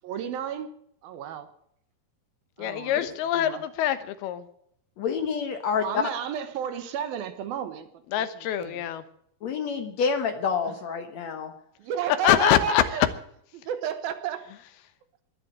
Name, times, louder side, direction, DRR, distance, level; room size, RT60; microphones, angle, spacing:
voice 1, 0.0-0.7 1.0-1.5 2.6-3.0 3.3-3.6 5.8-8.3 8.6-8.8 10.7-10.8 11.8-13.1 13.5-14.4, right 9 dB, 70° right, 10 dB, 2.9 m, -32 dB
voice 2, 2.6-4.5 8.1-9.0 12.2-13.1, left 11 dB, 80° left, 11 dB, 3.1 m, -24 dB
voice 3, 5.0-6.0 9.4-11.5, left 6 dB, 60° left, 7 dB, 2.0 m, -28 dB
21.5 x 7.6 x 8.7 m, 0.69 s
omnidirectional pair, 4.5 m